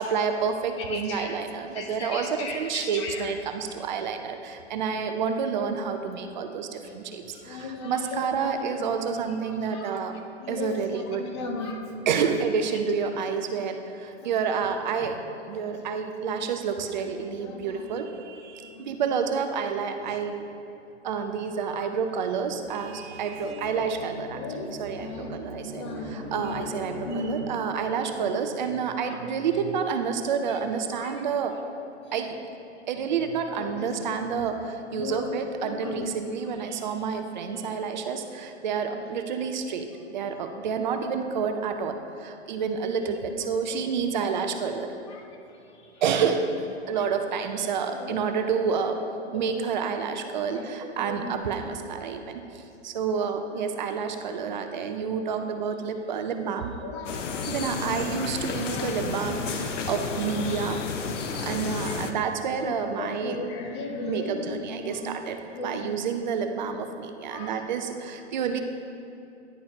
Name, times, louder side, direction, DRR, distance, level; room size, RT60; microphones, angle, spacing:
voice 1, 0.0-10.1 10.5-11.3 12.1-15.2 15.4-20.4 21.0-31.5 32.1-32.4 32.9-39.9 40.1-44.9 46.0-49.0 49.3-56.7 57.5-60.8 61.4-63.4 64.1-68.6, right 6 dB, 40° right, 6 dB, 0.4 m, -29 dB
voice 2, 0.9-1.4 1.7-3.3 6.8-6.9 7.3-9.9 10.4-12.4 14.2-14.3 14.6-14.7 15.0-15.1 15.7-15.9 17.2-17.9 18.6-19.0 20.0-20.2 21.8-21.9 23.4-23.7 24.3-24.7 25.0-25.4 25.7-26.6 27.0-27.6 27.9-28.4 29.0-29.2 30.9-31.1 33.5-34.5 35.0-35.3 35.6-36.0 37.9-38.0 38.9-39.0 40.1-40.2 43.7-43.9 45.1-45.2 45.8-46.0 46.9-47.0 47.9-48.2 49.2-49.6 50.5-51.6 53.1-53.3 53.6-53.7 56.8-58.1 58.5-59.1 59.4-59.5 61.8-61.9 63.0-65.1 65.5-65.9 67.3-67.5, left 2 dB, 25° left, 3 dB, 0.4 m, -37 dB
sound 1, 22.4-27.8, right 1 dB, 5° left, 1.0 m, -41 dB
sound 2, 57.1-62.1, left 5 dB, 85° left, 0.6 m, -32 dB
10.0 x 4.1 x 2.8 m, 2.8 s
hypercardioid pair, 140°, 36 cm